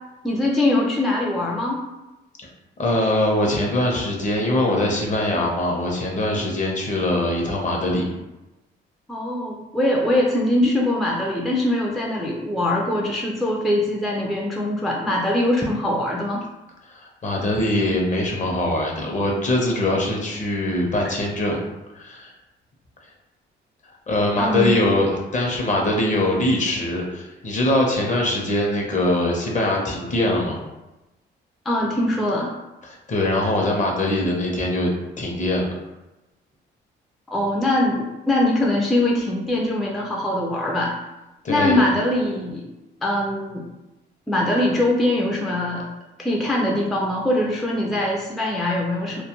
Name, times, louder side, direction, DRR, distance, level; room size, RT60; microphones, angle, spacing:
voice 1, 0.2-1.8 9.1-16.4 24.4-24.7 31.7-32.5 37.3-40.9 41.5-42.6 43.0-43.6 44.3-45.9 46.2-49.2, left 1 dB, ahead, -3 dB, 0.3 m, -22 dB
voice 2, 2.8-8.1 16.9-21.6 21.9-22.3 24.1-30.6 32.8-34.9 35.2-35.7 41.4-41.8, left 1 dB, 40° left, -1 dB, 0.7 m, -22 dB
2.3 x 2.1 x 2.9 m, 1.0 s
cardioid pair, 90°, 20 cm